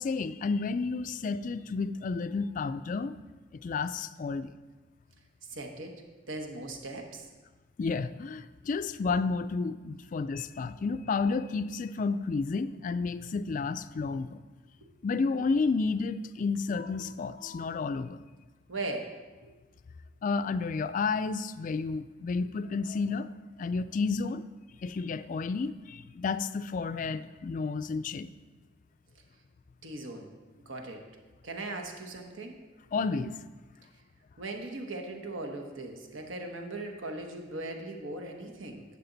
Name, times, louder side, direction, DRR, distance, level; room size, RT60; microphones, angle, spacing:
voice 1, 0.0-3.2 3.5-4.5 7.8-14.4 15.0-18.2 20.2-23.3 23.6-24.4 24.8-28.3 32.9-33.4, left 4 dB, 40° left, 13 dB, 0.3 m, -31 dB
voice 2, 5.4-5.9 6.3-7.3 18.7-19.1 19.4-19.5 29.8-30.3 30.5-31.0 31.4-32.6 34.4-38.8, right 2 dB, 85° right, 3 dB, 1.1 m, -39 dB
11.0 x 7.4 x 4.0 m, 1.3 s
head